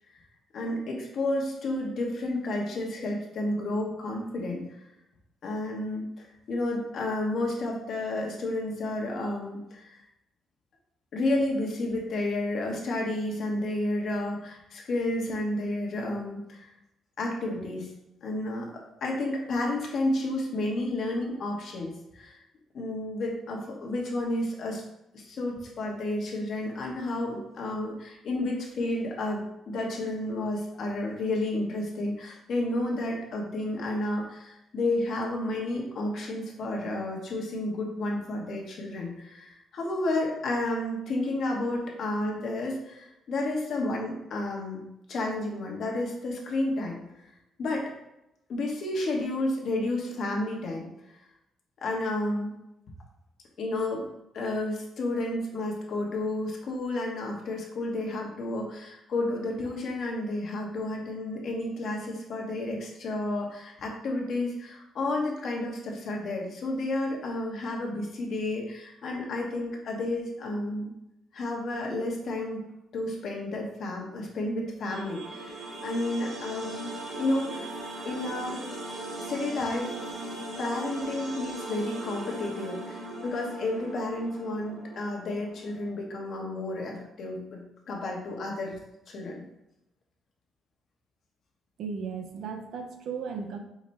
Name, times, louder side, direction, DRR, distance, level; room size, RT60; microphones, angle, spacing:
voice 1, 0.5-4.8 5.4-10.0 11.1-16.7 17.2-17.9 18.2-22.4 22.7-24.8 25.1-47.0 47.6-47.9 48.5-51.2 51.8-52.5 53.6-54.1 54.3-70.9 71.3-72.6 72.9-76.9 77.2-78.6 79.2-79.9 80.6-88.7 89.1-89.4, left 2 dB, 65° left, -1 dB, 1.0 m, -31 dB
sound 1, 74.8-85.9, right 1 dB, 55° right, 1.4 m, -39 dB
voice 2, 91.8-93.6, right 6 dB, 75° right, 5 dB, 0.5 m, -35 dB
5.0 x 2.1 x 4.1 m, 0.88 s
cardioid pair, 90°, 0 cm